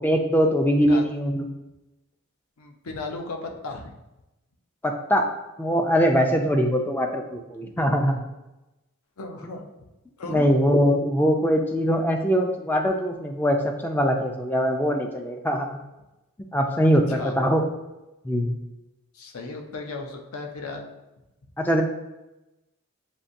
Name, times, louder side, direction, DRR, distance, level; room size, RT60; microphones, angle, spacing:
voice 1, 0.0-1.5 4.8-5.2 5.6-8.2 10.3-15.8 16.5-17.6 18.2-18.6 21.6-21.8, equal, 10° left, 3 dB, 0.3 m, -22 dB
voice 2, 2.6-3.9 9.2-9.7 10.2-10.5 17.1-17.4 19.1-20.9, left 3 dB, 70° left, 3 dB, 0.6 m, -35 dB
6.9 x 2.5 x 2.6 m, 0.98 s
head